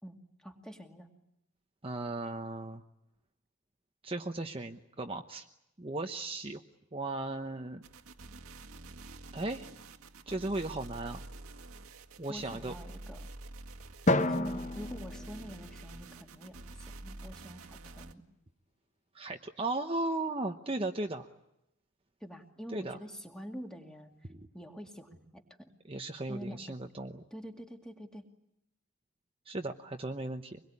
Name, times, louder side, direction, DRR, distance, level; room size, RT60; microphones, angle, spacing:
voice 1, 0.0-1.1 12.3-13.3 14.1-18.2 22.2-24.1 24.5-25.7 26.3-26.7 27.3-28.3, equal, 5° left, 4 dB, 2.4 m, -46 dB
voice 2, 1.8-2.8 4.0-5.5 5.8-6.6 6.9-7.8 9.3-9.7 10.3-11.2 12.2-12.7 19.1-21.3 22.7-23.0 24.3-24.5 25.9-27.2 29.5-30.6, right 2 dB, 25° right, 5 dB, 1.0 m, -36 dB
sound 1, 7.8-18.1, right 2 dB, 85° right, 2.0 m, -48 dB
Drum, 14.1-16.4, left 1 dB, 35° left, 0.9 m, -31 dB
25.0 x 21.5 x 9.8 m, 0.86 s
head